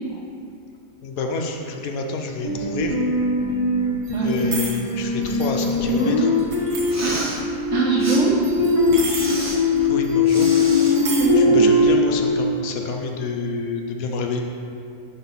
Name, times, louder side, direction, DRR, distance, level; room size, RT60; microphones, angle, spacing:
voice 1, 1.0-2.9 4.2-6.3 9.8-10.5 11.4-14.4, left 3 dB, 70° left, 3 dB, 1.0 m, -28 dB
sound 1, 2.4-12.3, left 2 dB, 25° left, 1.2 m, -20 dB
sound 2, 4.0-4.9 5.2-7.4 8.4-9.8 10.0-10.1 10.4-11.3, right 4 dB, 85° right, 1.4 m, -33 dB
voice 2, 4.1-4.5 7.0-7.4 7.7-8.4 11.2-11.8, right 4 dB, 55° right, -3 dB, 1.1 m, -23 dB
Respiratory sounds, 6.9-7.4 8.0-8.2 9.1-9.6 10.2-11.0, right 1 dB, 25° right, 0.3 m, -31 dB
5.4 x 4.0 x 6.0 m, 2.6 s
omnidirectional pair, 1.6 m